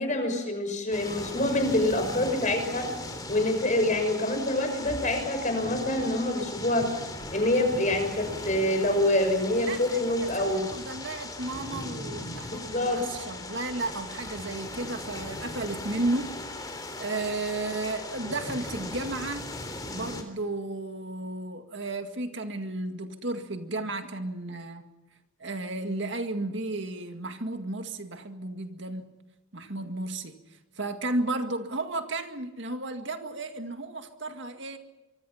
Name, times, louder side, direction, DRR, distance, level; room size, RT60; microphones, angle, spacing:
voice 1, 0.0-2.9 3.3-6.9 7.3-10.7 12.4-13.0, left 1 dB, 35° left, 6 dB, 6.1 m, -26 dB
sound 1, 0.9-20.2, left 2 dB, 20° left, 3.5 m, -38 dB
voice 2, 9.6-16.4 17.0-19.5 19.9-24.9 25.4-29.2 29.5-30.4 30.8-34.8, right 2 dB, 60° right, 6 dB, 2.0 m, -33 dB
25.5 x 24.0 x 5.8 m, 1.1 s
head